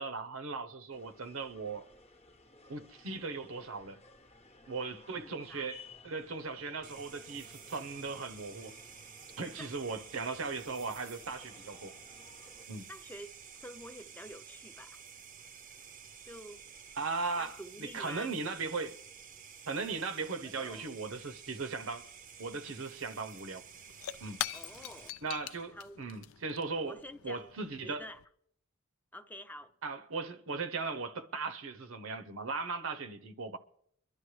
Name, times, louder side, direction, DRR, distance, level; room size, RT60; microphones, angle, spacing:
voice 1, 0.0-1.8 2.7-4.0 4.7-8.8 9.4-11.9 12.7-12.9 17.0-19.0 19.7-22.1 22.4-23.6 24.2-24.4 25.2-27.0 27.2-28.1 29.8-33.6, right 4 dB, 75° right, 0.8 m, -38 dB
sound 1, 0.9-12.7, left 3 dB, 30° left, 0.9 m, -57 dB
voice 2, 5.1-5.7 9.4-10.0 12.9-15.0 16.2-16.6 17.4-18.3 20.4-20.9 24.5-25.1 25.7-26.0 26.8-27.5 27.8-28.2 29.1-29.7, equal, 10° left, 0.6 m, -49 dB
sound 2, 6.8-25.1, right 7 dB, 40° right, 0.6 m, -52 dB
Shatter / Crushing, 23.4-28.2, left 11 dB, 85° left, 0.4 m, -43 dB
23.5 x 11.5 x 3.2 m
head